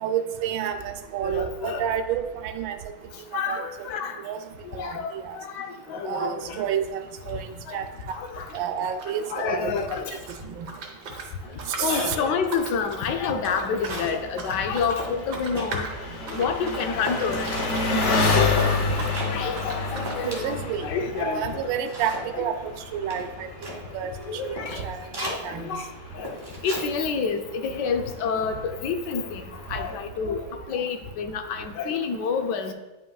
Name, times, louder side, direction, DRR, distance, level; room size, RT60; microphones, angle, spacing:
voice 1, 0.0-2.8 3.5-3.6 4.2-4.4 4.7-5.4 6.1-7.0 7.3-7.8 8.5-9.7 10.5-10.7 11.8-12.2 20.2-20.9 21.2-22.5 22.9-23.5 23.9-24.1 24.4-24.6 24.8-25.7, right 8 dB, 90° right, 8 dB, 1.3 m, -29 dB
voice 2, 1.2-1.8 3.3-4.2 4.8-6.7 7.7-7.8 8.1-8.5 9.3-10.2 11.8-15.9 16.3-18.9 19.3-21.4 22.3-22.4 24.3-24.8 25.2-25.4 25.6-25.8 26.1-26.3 26.6-29.4 29.7-32.7, left 5 dB, 75° left, 6 dB, 1.2 m, -28 dB
sound 1, 6.4-6.6 6.9-9.4 9.7-18.3 18.5-19.2 19.6-20.2, right 3 dB, 65° right, 1.5 m, -39 dB
Engine, 11.8-29.9, left 3 dB, 55° left, 0.9 m, -31 dB
sound 2, 13.2-13.3 13.5-14.3 14.7-14.8 15.0-15.7 16.1-16.6 17.0-17.7 18.6-18.8 19.1-19.3 19.7-19.8 20.0-20.7 21.2-21.3 21.5-22.3 23.1-23.8 24.2-24.3 24.6-24.8 25.1-25.4 26.2-26.9 27.2-27.4, right 1 dB, 30° right, 1.4 m, -35 dB
9.5 x 5.4 x 2.3 m, 1.1 s
omnidirectional pair, 2.0 m